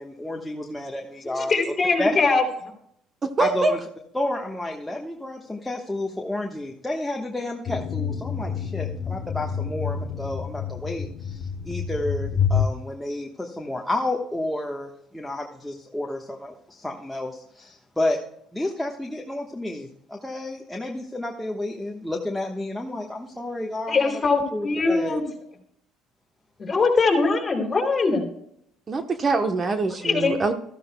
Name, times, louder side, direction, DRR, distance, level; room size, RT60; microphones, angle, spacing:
voice 1, 0.0-1.5 2.0-2.2 3.4-3.8 4.1-18.2 18.5-24.2 24.5-25.2, left 1 dB, 5° left, 0 dB, 1.2 m, -30 dB
voice 2, 1.4-2.4 23.9-25.2 26.7-28.3 30.0-30.4, left 4 dB, 30° left, 2 dB, 3.2 m, -21 dB
voice 3, 3.4-3.7 28.9-30.5, right 3 dB, 30° right, 7 dB, 0.9 m, -23 dB
sound 1, 7.7-12.7, left 7 dB, 50° left, 0.8 m, -28 dB
13.5 x 13.5 x 2.2 m, 0.73 s
cardioid pair, 105°, 0 cm